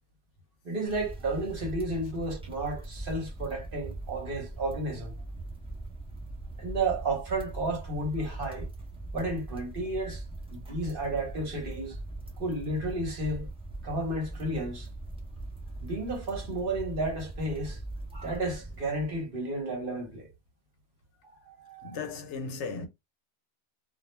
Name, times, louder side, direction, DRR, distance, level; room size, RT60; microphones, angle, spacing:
voice 1, 0.6-5.2 6.6-8.7 9.1-10.2 10.5-12.0 12.4-13.5 13.8-14.9 15.8-17.8 18.1-20.3 21.5-21.9, right 2 dB, 50° right, 1.0 m, -32 dB
sound 1, 0.9-19.2, right 2 dB, 10° right, 0.3 m, -41 dB
voice 2, 21.8-22.9, left 4 dB, 75° left, 0.9 m, -36 dB
2.3 x 2.1 x 3.0 m
omnidirectional pair, 1.2 m